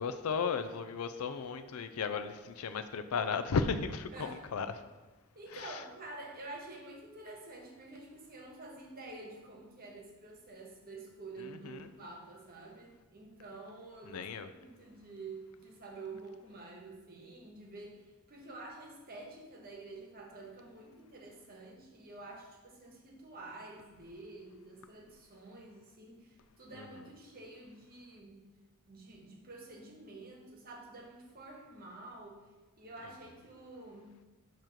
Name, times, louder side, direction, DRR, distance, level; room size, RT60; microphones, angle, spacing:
voice 1, 0.0-4.8 5.5-5.8 11.4-11.9 14.1-14.5 26.7-27.0, left 5 dB, 85° left, 11 dB, 0.5 m, -35 dB
voice 2, 5.3-28.5 28.9-32.4 32.8-34.1, right 2 dB, 45° right, 0 dB, 1.3 m, -49 dB
6.8 x 3.1 x 5.8 m, 1.2 s
head